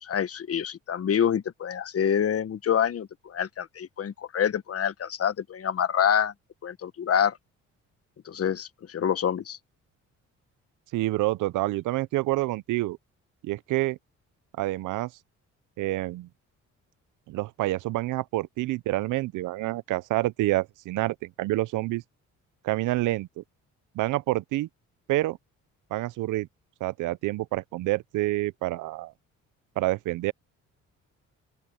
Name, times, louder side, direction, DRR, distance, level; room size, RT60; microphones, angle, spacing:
voice 1, 0.0-6.3 6.6-7.4 8.2-9.6, left 8 dB, 50° left, 1.3 m, -26 dB
voice 2, 10.9-13.0 13.4-14.0 14.6-15.1 15.8-16.3 17.3-22.0 22.6-23.4 23.9-24.7 25.1-25.4 25.9-26.5 26.8-29.1 29.8-30.3, right 18 dB, 85° right, 0.7 m, -28 dB
open air
cardioid pair, 90°, 30 cm